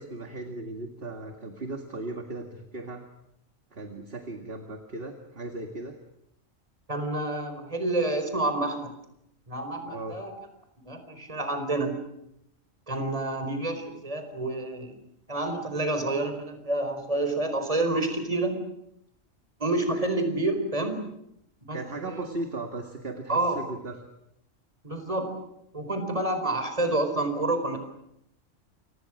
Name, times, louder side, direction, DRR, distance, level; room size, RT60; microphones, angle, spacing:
voice 1, 0.0-3.0 3.7-6.0 9.9-10.1 21.7-24.0, right 2 dB, 45° right, 4 dB, 2.2 m, -37 dB
voice 2, 6.9-8.9 9.5-10.4 10.8-12.0 12.9-14.9 15.3-18.6 19.6-21.0 21.6-22.3 23.3-23.6 24.8-25.4 25.7-27.8, right 2 dB, 25° right, 7 dB, 4.7 m, -28 dB
29.0 x 25.0 x 6.4 m, 0.79 s
omnidirectional pair, 1.3 m